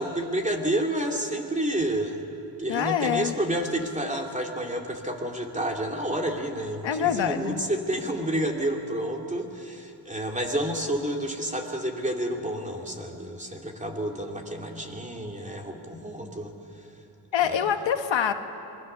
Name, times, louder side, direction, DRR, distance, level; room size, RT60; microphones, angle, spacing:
voice 1, 0.0-2.2 2.6-16.5 17.4-17.7, right 1 dB, 15° right, 2 dB, 2.6 m, -30 dB
voice 2, 2.7-3.3 6.8-7.6 17.3-18.3, left 9 dB, 85° left, 7 dB, 1.3 m, -25 dB
26.5 x 21.0 x 6.9 m, 2.7 s
cardioid pair, 95°, 44 cm